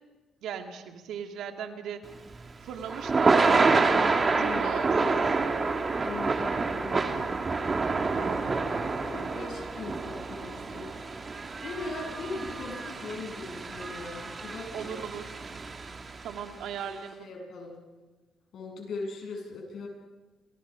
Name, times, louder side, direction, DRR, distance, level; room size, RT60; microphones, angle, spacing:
voice 1, 0.4-2.0 2.6-3.4 4.4-5.1 8.1-8.7 14.7-15.3 16.2-17.3, right 8 dB, 80° right, 5 dB, 2.3 m, -37 dB
Thunder / Rain, 2.1-16.4, right 4 dB, 35° right, 2.5 m, -28 dB
voice 2, 4.4-4.9 6.0-7.3 9.0-10.9 11.6-15.0 16.8-16.9 17.2-17.8 18.5-19.9, left 3 dB, 65° left, 1 dB, 7.8 m, -39 dB
29.5 x 26.5 x 5.1 m, 1.3 s
cardioid pair, 90°, 0 cm